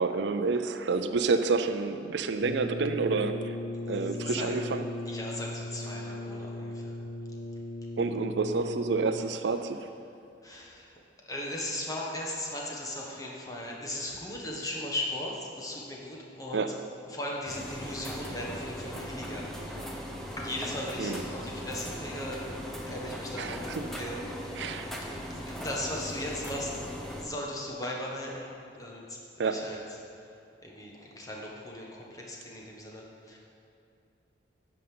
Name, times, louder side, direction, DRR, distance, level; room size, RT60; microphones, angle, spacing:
voice 1, 0.0-3.6 3.9-4.9 8.0-9.9 16.5-16.8 21.0-21.2 23.4-23.9 24.5-24.9 29.4-29.7, right 4 dB, 70° right, 9 dB, 0.5 m, -29 dB
Brass instrument, 2.4-9.5, left 1 dB, 70° left, 0.5 m, -38 dB
voice 2, 4.2-4.6 5.1-7.0 10.4-10.9 11.3-16.6 17.1-19.7 20.4-22.4 22.9-24.6 25.0-26.8 27.2-28.5 28.7-29.8 30.6-33.4, left 1 dB, 20° left, -2 dB, 1.4 m, -37 dB
sound 1, 17.5-27.2, equal, ahead, 0.9 m, -39 dB
9.3 x 5.4 x 7.7 m, 2.5 s
head